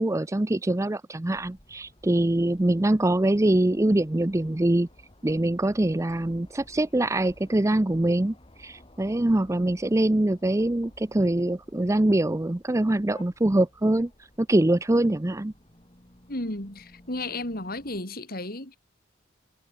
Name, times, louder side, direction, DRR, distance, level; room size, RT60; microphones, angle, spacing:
voice 1, 0.0-4.9 5.2-14.1 14.4-15.5, right 1 dB, 15° right, 0.5 m, -24 dB
sound 1, 1.3-18.0, left 1 dB, 30° left, 3.8 m, -55 dB
voice 2, 16.3-18.8, left 2 dB, 50° left, 4.6 m, -33 dB
head